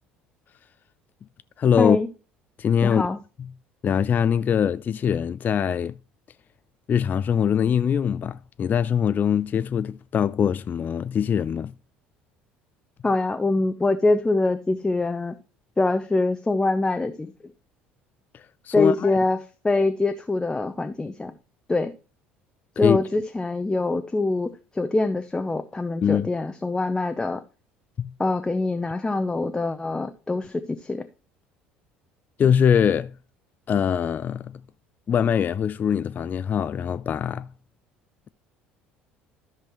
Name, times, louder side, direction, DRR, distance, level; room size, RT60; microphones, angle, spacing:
voice 1, 1.6-2.0 2.6-3.1 3.4-3.5 3.8-6.0 6.9-11.7 18.3-19.2 22.8-23.0 26.0-26.3 28.0-28.1 32.4-33.2 33.7-34.6 35.1-37.5, left 8 dB, 35° left, 0.3 m, -23 dB
voice 2, 2.8-3.2 13.0-15.3 15.8-17.3 18.7-19.4 19.6-21.3 21.7-21.9 22.8-27.4 28.2-31.1, left 2 dB, 15° left, 0.7 m, -24 dB
13.5 x 5.9 x 3.0 m
figure-of-eight pair, 60°, 5 cm